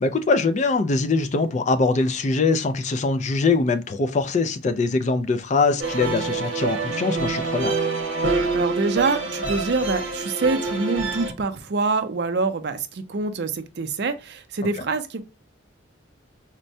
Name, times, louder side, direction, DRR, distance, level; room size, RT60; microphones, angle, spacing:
voice 1, 0.0-7.7, left 3 dB, 35° left, 0.3 m, -22 dB
sound 1, 5.8-11.3, right 3 dB, 75° right, 0.9 m, -26 dB
voice 2, 8.5-15.2, right 3 dB, 55° right, 0.5 m, -25 dB
4.4 x 2.1 x 2.6 m
head